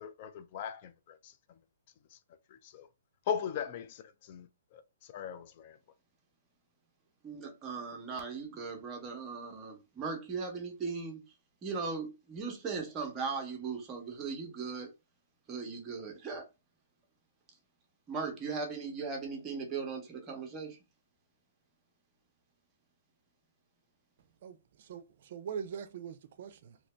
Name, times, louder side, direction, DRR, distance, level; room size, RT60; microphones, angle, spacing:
voice 1, 0.0-1.4 2.1-2.2 2.5-2.9 3.3-5.8, left 8 dB, 40° left, 0.4 m, -39 dB
voice 2, 7.2-11.2 11.6-14.9 15.5-16.5 18.1-20.8, right 5 dB, 20° right, 0.9 m, -38 dB
voice 3, 24.4-26.8, right 7 dB, 50° right, 0.5 m, -42 dB
2.9 x 2.6 x 3.3 m
hypercardioid pair, 160°, 0 cm